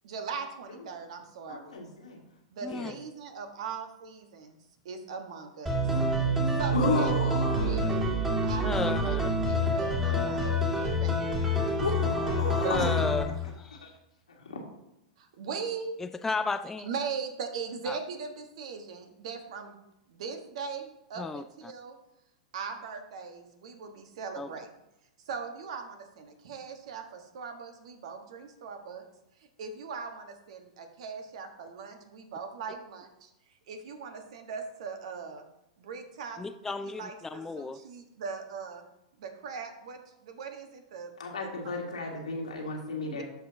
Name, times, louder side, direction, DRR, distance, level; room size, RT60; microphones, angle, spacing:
voice 1, 0.0-1.8 2.5-4.6 4.8-5.8 6.6-8.0 8.4-11.2 11.9-12.0 12.3-12.7 15.2-15.9 16.8-19.8 20.1-22.0 22.5-24.7 25.2-29.0 29.6-35.4 35.8-38.8 39.2-41.1 41.4-41.8 43.1-43.2, right 5 dB, 65° right, 6 dB, 1.4 m, -40 dB
voice 2, 1.5-2.2 2.7-2.9 6.7-7.9 11.8-12.9 13.8-13.9 14.5-14.6 41.2-43.2, left 3 dB, 90° left, -1 dB, 2.0 m, -33 dB
voice 3, 2.6-2.9 8.6-9.3 10.0-10.5 12.6-13.7 16.0-16.9 17.9-18.0 21.2-21.4 24.4-24.5 36.4-37.8, left 4 dB, 10° left, 10 dB, 0.3 m, -34 dB
sound 1, 5.7-13.2, equal, 15° right, 2.1 m, -27 dB
13.0 x 5.0 x 2.8 m, 0.88 s
hypercardioid pair, 110°, 4 cm